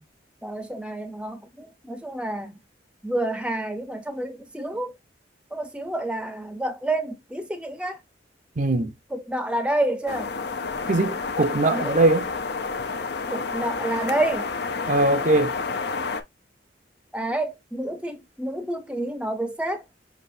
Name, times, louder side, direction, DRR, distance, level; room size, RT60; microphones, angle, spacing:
voice 1, 0.4-2.6 3.0-4.9 5.5-8.0 9.1-10.3 11.7-12.0 13.3-14.5 17.1-19.8, right 1 dB, 5° right, 0.7 m, -29 dB
voice 2, 8.6-8.9 10.9-12.2 14.9-15.5, right 2 dB, 45° right, 0.6 m, -21 dB
sound 1, 10.1-16.2, left 4 dB, 60° left, 0.7 m, -29 dB
6.0 x 2.9 x 2.6 m
head